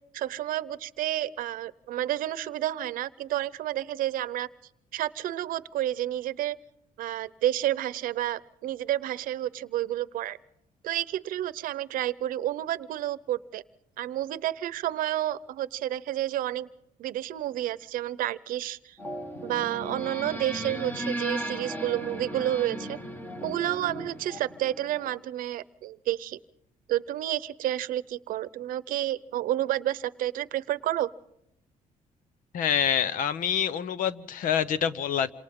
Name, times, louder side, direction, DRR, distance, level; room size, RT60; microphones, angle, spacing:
voice 1, 0.1-4.5 4.9-6.6 7.0-10.4 10.8-13.6 14.0-16.7 17.0-19.0 19.4-23.0 23.4-26.4 26.9-31.1, right 13 dB, 85° right, 0.7 m, -30 dB
sound 1, 19.0-25.1, right 1 dB, 15° left, 1.6 m, -36 dB
voice 2, 32.5-35.3, left 8 dB, 75° left, 1.0 m, -26 dB
28.0 x 27.0 x 3.7 m
cardioid pair, 165°, 14 cm